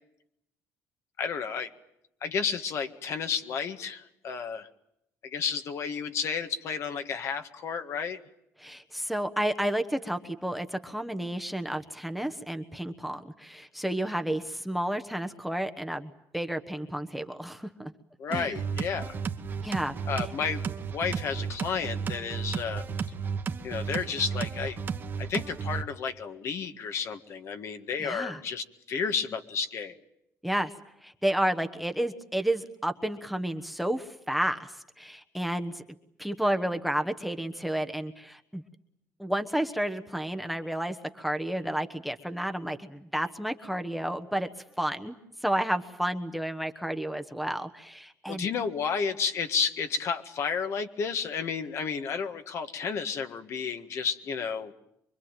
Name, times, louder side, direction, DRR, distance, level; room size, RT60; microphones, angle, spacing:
voice 1, 1.2-1.7 2.2-4.7 5.2-8.2 18.2-19.2 20.1-20.6 20.9-22.8 23.6-24.8 25.2-29.9 48.3-54.7, left 6 dB, 55° left, 8 dB, 1.8 m, -32 dB
voice 2, 8.6-17.9 18.3-18.6 19.6-19.9 28.0-28.4 30.4-30.7 31.0-35.8 36.2-38.6 39.2-44.5 44.8-45.1 45.4-48.5, right 1 dB, ahead, 8 dB, 1.2 m, -31 dB
sound 1, 18.3-25.8, right 6 dB, 35° right, 1.4 m, -33 dB
25.5 x 23.0 x 9.1 m, 0.80 s
cardioid pair, 135°, 6 cm